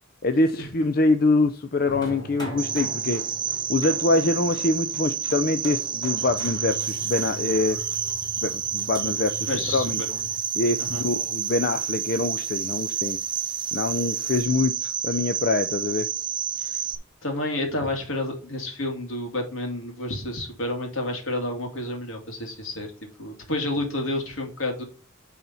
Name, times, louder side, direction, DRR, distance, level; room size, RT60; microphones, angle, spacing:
voice 1, 0.2-3.2 3.7-7.8 8.4-10.0 10.5-13.2 13.7-16.1, left 2 dB, 45° left, 8 dB, 0.5 m, -24 dB
sound 1, 1.8-14.4, equal, 20° left, 3.1 m, -41 dB
Cricket, 2.6-17.0, right 8 dB, 25° right, 0.5 m, -29 dB
voice 2, 9.4-10.3 10.8-11.0 16.6-16.8 17.2-22.9 23.2-24.8, left 1 dB, 75° left, 3 dB, 2.4 m, -30 dB
9.4 x 4.2 x 4.3 m, 0.37 s
head